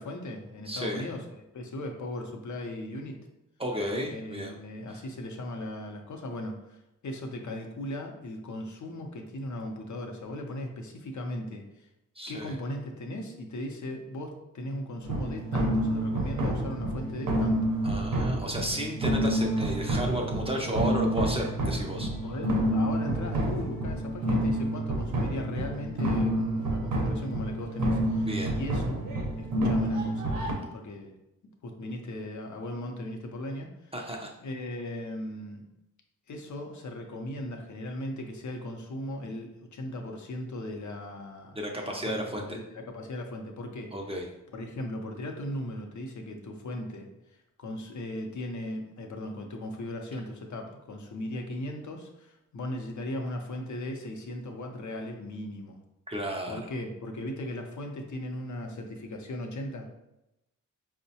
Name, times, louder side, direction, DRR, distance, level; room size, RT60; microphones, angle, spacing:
voice 1, 0.0-3.2 4.1-11.9 12.3-17.7 22.2-29.1 29.3-30.4 30.7-31.1 31.6-33.9 34.4-35.7 36.3-43.9 44.5-55.8 56.5-59.9, left 1 dB, 60° left, 3 dB, 0.6 m, -38 dB
voice 2, 0.7-1.0 3.6-4.6 4.9-5.0 12.2-12.5 17.8-22.1 28.3-28.5 33.9-34.3 41.6-42.6 43.9-44.3 56.1-56.6, equal, 20° right, 0 dB, 0.5 m, -33 dB
sound 1, 15.0-30.5, right 1 dB, 85° right, 0.6 m, -28 dB
4.5 x 2.1 x 2.7 m, 0.91 s
cardioid pair, 80°, 33 cm